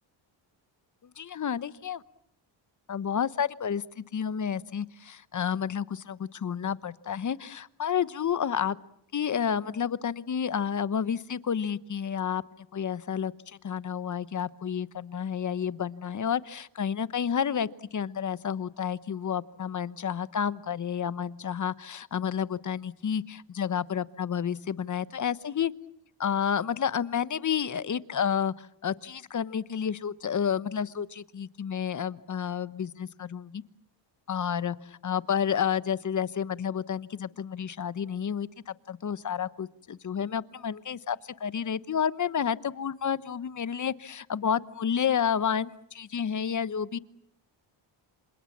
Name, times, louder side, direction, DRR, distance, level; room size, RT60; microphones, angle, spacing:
voice 1, 1.2-2.0 2.9-8.8 9.1-25.7 26.2-33.6 34.3-47.0, left 8 dB, 40° left, 16 dB, 1.0 m, -30 dB
28.0 x 27.0 x 7.4 m, 0.74 s
cardioid pair, 95°, 47 cm